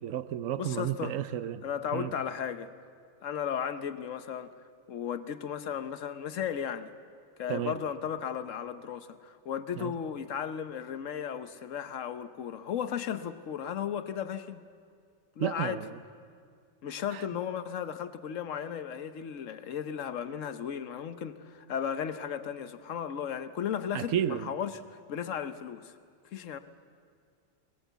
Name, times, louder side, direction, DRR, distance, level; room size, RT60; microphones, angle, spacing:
voice 1, 0.0-1.6 1.9-2.1 7.5-7.8 9.8-9.9 15.4-16.0 17.1-17.2 23.9-24.5, right 10 dB, 90° right, 1.1 m, -32 dB
voice 2, 0.6-1.1 1.6-2.7 3.2-4.5 4.9-6.9 7.4-14.6 15.4-15.8 16.8-25.9 26.3-26.6, left 8 dB, 75° left, 1.2 m, -35 dB
20.0 x 20.0 x 8.1 m
omnidirectional pair, 1.3 m